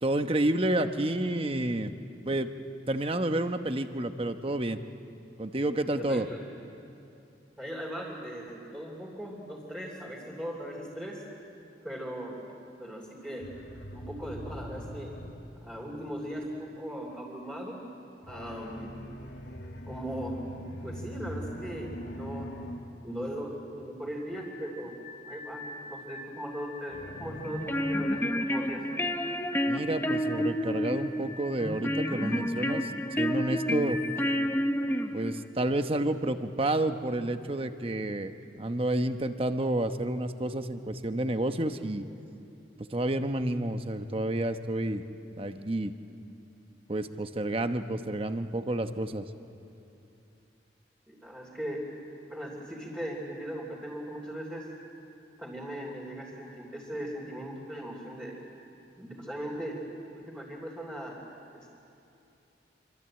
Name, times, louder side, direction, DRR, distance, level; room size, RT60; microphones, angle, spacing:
voice 1, 0.0-1.9 2.3-2.5 2.9-4.8 5.4-6.3 29.7-32.9 33.2-34.0 35.1-42.0 42.9-45.0 45.4-45.9 46.9-49.2, right 1 dB, 30° right, 8 dB, 1.0 m, -30 dB
voice 2, 5.9-6.4 7.6-11.2 11.8-12.4 12.8-13.5 13.9-15.1 15.6-17.8 18.3-19.0 19.9-20.4 20.8-22.5 23.0-24.9 25.2-28.8 51.1-51.8 52.3-54.7 55.4-58.4 58.9-59.8 60.1-61.2 61.5-61.7, equal, 10° right, -4 dB, 3.3 m, -39 dB
sound 1, 13.4-16.5 18.2-23.9 26.9-29.3, equal, 85° left, 2.0 m, -43 dB
sound 2, 24.3-34.5, left 2 dB, 35° left, 2.1 m, -44 dB
sound 3, 27.4-35.5, equal, 10° left, 0.8 m, -30 dB
26.5 x 25.0 x 8.9 m, 2.7 s
head